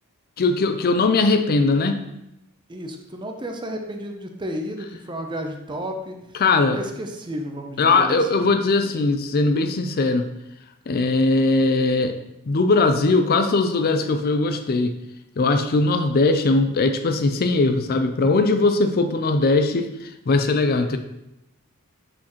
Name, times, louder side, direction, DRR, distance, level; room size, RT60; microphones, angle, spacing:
voice 1, 0.4-2.0 6.4-6.8 7.8-10.3 10.9-12.2 12.5-15.0 15.4-21.0, left 3 dB, 45° left, 7 dB, 0.4 m, -20 dB
voice 2, 2.7-6.2 6.7-8.5, equal, 20° right, 4 dB, 0.6 m, -32 dB
6.2 x 6.1 x 3.0 m, 0.86 s
head